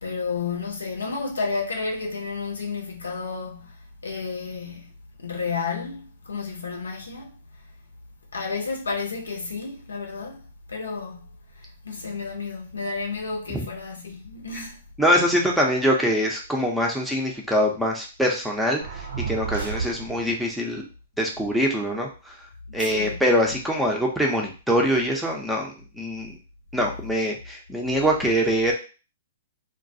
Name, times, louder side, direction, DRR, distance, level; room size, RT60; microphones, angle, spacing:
voice 1, 0.0-4.9 5.2-7.4 8.3-11.3 11.6-14.8 22.7-23.2, left 4 dB, 80° left, 0.7 m, -31 dB
voice 2, 15.0-20.8 21.2-22.1 22.7-26.3 26.7-28.7, equal, ahead, 0.6 m, -23 dB
sound 1, 18.8-20.5, right 5 dB, 70° right, 0.6 m, -32 dB
2.2 x 2.2 x 2.6 m
figure-of-eight pair, 115°, 0 cm